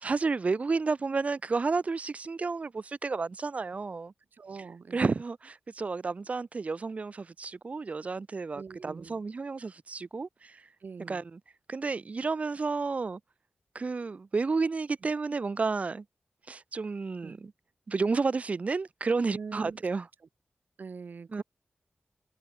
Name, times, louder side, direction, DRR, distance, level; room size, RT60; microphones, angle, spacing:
voice 1, 0.0-4.1 4.9-10.6 11.1-11.4 11.7-13.2 13.7-16.0 16.5-17.5 17.9-20.1 21.3-21.4, right 4 dB, 40° right, 0.3 m, -31 dB
voice 2, 4.4-5.0 8.5-9.2 10.8-11.2 17.2-17.4 19.3-19.8 20.8-21.4, right 5 dB, 65° right, 1.4 m, -43 dB
wide cardioid pair, 85°, 4 cm